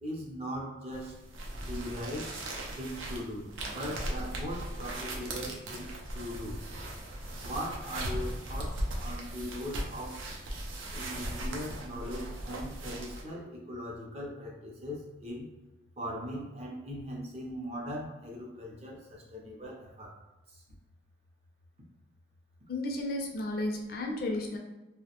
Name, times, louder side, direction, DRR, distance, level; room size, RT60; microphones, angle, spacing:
voice 1, 0.0-1.2 1.7-2.4 2.8-6.6 7.4-10.3 10.9-15.5 16.0-20.2 20.5-20.6, equal, 30° right, -2 dB, 0.5 m, -40 dB
sound 1, 0.9-13.2, right 1 dB, 80° right, 0.5 m, -38 dB
voice 2, 22.7-24.6, left 1 dB, 50° left, 2 dB, 0.3 m, -33 dB
2.5 x 2.0 x 2.8 m, 1.1 s
head